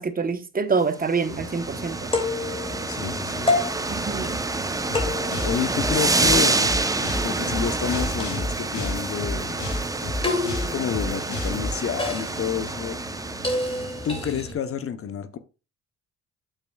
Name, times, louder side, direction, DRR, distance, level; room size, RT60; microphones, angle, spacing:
voice 1, 0.0-2.1 3.9-4.4, right 5 dB, 30° right, 0.9 m, -26 dB
sound 1, 1.0-14.2, right 3 dB, 10° right, 0.6 m, -28 dB
sound 2, 1.3-14.5, left 2 dB, 20° left, 2.4 m, -31 dB
voice 2, 2.9-3.6 5.4-6.7 7.2-9.6 10.7-13.0 14.0-15.4, left 8 dB, 45° left, 0.8 m, -29 dB
sound 3, 4.9-11.7, left 1 dB, 85° left, 2.5 m, -31 dB
9.0 x 7.4 x 2.3 m
cardioid pair, 90°, 30 cm